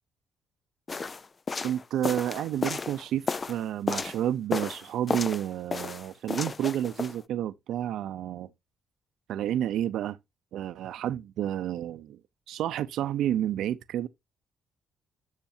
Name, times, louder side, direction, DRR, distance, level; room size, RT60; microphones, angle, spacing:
sound 1, 0.9-4.2 4.5-5.5 5.7-7.2, left 4 dB, 35° left, 0.4 m, -32 dB
voice 1, 1.6-8.5 9.3-10.2 10.5-12.2 12.5-14.1, right 11 dB, 80° right, 0.6 m, -30 dB
11.5 x 6.6 x 2.7 m
cardioid pair, 90°, 0 cm